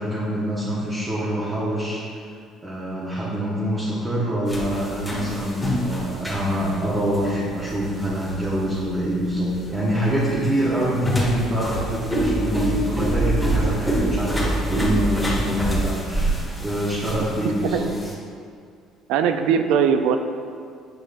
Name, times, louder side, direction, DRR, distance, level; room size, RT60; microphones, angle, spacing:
voice 1, 0.0-2.3 2.6-16.3 16.6-17.9, equal, 20° right, -8 dB, 1.2 m, -25 dB
sound 1, 4.5-18.1, right 1 dB, 5° left, 1.4 m, -26 dB
voice 2, 19.1-20.2, right 7 dB, 80° right, 8 dB, 0.4 m, -20 dB
9.0 x 4.9 x 2.6 m, 2.2 s
cardioid pair, 120°, 0 cm